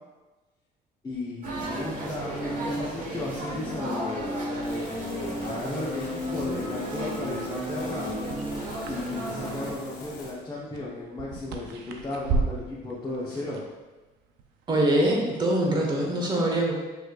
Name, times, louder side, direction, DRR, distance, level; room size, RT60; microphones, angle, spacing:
voice 1, 1.0-4.4 5.4-8.2 8.9-13.6, left 2 dB, 20° left, -8 dB, 0.9 m, -35 dB
sound 1, 1.4-9.7, equal, 50° right, 1.3 m, -33 dB
sound 2, 4.6-10.3, left 3 dB, 70° left, 1.1 m, -45 dB
sound 3, 7.2-15.5, right 4 dB, 85° right, 0.5 m, -37 dB
voice 2, 14.7-16.7, right 1 dB, 25° right, -1 dB, 1.1 m, -23 dB
6.4 x 3.2 x 2.4 m, 1.2 s
cardioid pair, 110°, 17 cm